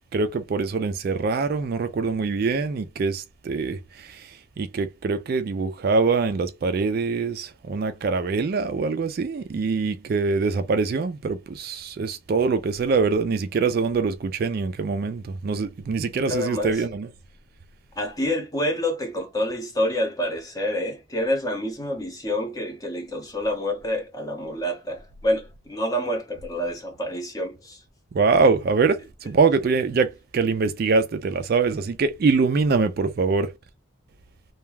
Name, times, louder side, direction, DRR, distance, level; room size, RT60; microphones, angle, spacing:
voice 1, 0.1-17.1 28.1-33.5, right 4 dB, 50° right, 0.3 m, -24 dB
voice 2, 16.3-16.7 18.0-27.8, left 1 dB, 15° left, 0.6 m, -27 dB
2.3 x 2.2 x 3.2 m
head